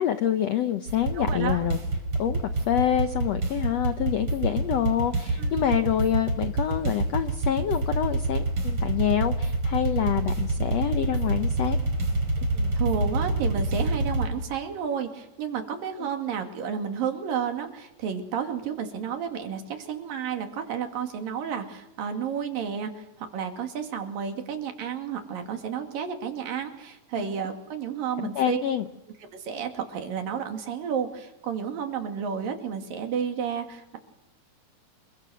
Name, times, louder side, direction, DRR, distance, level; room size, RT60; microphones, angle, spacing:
voice 1, 0.0-1.8 2.2-11.8 16.0-16.1 28.2-28.8, left 10 dB, 75° left, 9 dB, 1.5 m, -26 dB
sound 1, 0.9-14.3, right 2 dB, 35° right, 5.1 m, -27 dB
voice 2, 1.2-1.7 5.4-5.6 12.4-28.6 29.2-34.0, right 7 dB, 70° right, 5 dB, 4.1 m, -31 dB
28.0 x 22.5 x 6.4 m, 0.89 s
omnidirectional pair, 4.2 m